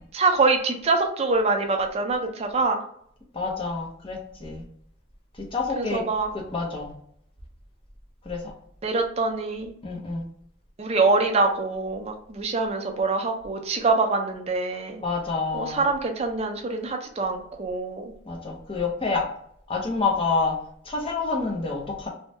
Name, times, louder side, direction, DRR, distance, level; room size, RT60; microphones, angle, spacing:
voice 1, 0.1-2.8 5.8-6.3 8.8-9.7 10.8-15.0 15.5-18.0, right 3 dB, 30° right, 4 dB, 0.4 m, -24 dB
voice 2, 3.3-4.6 5.4-6.0 6.3-6.9 8.2-8.5 9.8-10.2 15.0-15.8 18.3-19.2 19.7-20.5 20.8-22.1, left 4 dB, 25° left, 0 dB, 0.6 m, -28 dB
2.7 x 2.2 x 3.1 m, 0.67 s
head